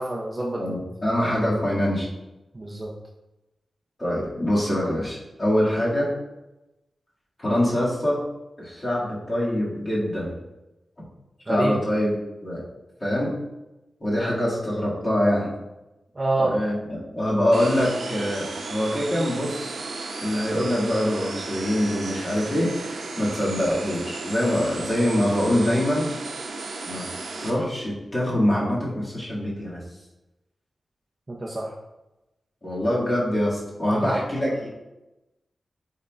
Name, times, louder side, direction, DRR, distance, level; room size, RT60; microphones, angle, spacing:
voice 1, 0.0-0.8 2.5-2.9 11.5-11.8 16.1-16.5 31.3-31.7 34.0-34.2, right 2 dB, 20° right, -3 dB, 0.6 m, -27 dB
voice 2, 0.6-2.1 4.0-6.1 7.4-8.2 8.6-10.4 11.5-12.1 12.4-12.6 13.0-13.3 14.0-15.5 16.3-19.8 20.2-26.1 26.8-27.1 27.4-29.8 32.6-34.7, left 1 dB, 25° left, -8 dB, 2.2 m, -24 dB
sound 1, 17.5-27.5, right 3 dB, 80° right, 0.8 m, -34 dB
9.0 x 4.2 x 2.5 m, 0.98 s
wide cardioid pair, 175°, 0 cm